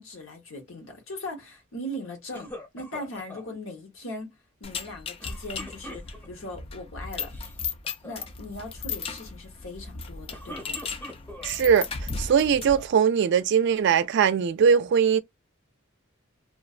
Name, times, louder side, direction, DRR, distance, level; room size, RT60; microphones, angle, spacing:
voice 1, 0.0-4.3 4.6-7.3 8.0-10.8, left 1 dB, 75° left, 1.0 m, -39 dB
sound 1, 2.3-3.5 5.2-6.5 7.2-7.6 7.8-8.3 10.1-11.6 12.2-12.9, left 1 dB, 10° left, 0.7 m, -43 dB
sound 2, 4.6-12.9, left 5 dB, 30° left, 0.3 m, -36 dB
voice 2, 11.4-11.9 12.2-15.2, right 7 dB, 60° right, 0.3 m, -21 dB
2.4 x 2.2 x 2.4 m
head